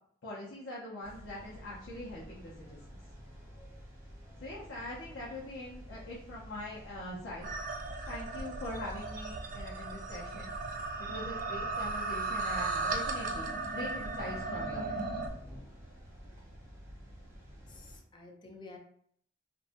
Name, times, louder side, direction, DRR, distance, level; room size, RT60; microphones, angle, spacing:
voice 1, 0.2-2.8 4.4-7.5 8.1-10.5 11.0-15.0, left 1 dB, 75° left, -7 dB, 0.6 m, -43 dB
sound 1, 1.0-18.0, equal, 15° right, 0.7 m, -51 dB
sound 2, 7.4-15.3, right 3 dB, 45° right, 0.3 m, -36 dB
voice 2, 17.7-18.8, left 3 dB, 25° left, 2 dB, 0.4 m, -51 dB
2.5 x 2.2 x 2.5 m, 0.64 s
head